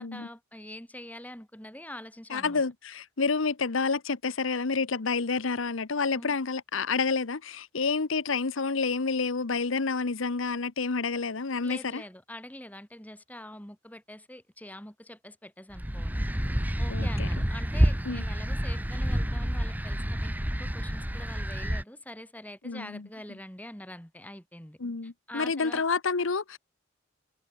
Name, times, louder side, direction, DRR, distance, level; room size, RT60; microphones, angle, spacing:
voice 1, 0.0-2.6 6.1-6.4 11.6-16.2 16.8-24.8 25.3-26.0, left 1 dB, 10° left, 2.4 m, -45 dB
voice 2, 2.3-12.0 16.9-17.3 18.0-18.3 22.6-23.1 24.8-26.6, left 4 dB, 80° left, 1.0 m, -29 dB
sound 1, 15.7-21.8, equal, 10° right, 1.2 m, -28 dB
head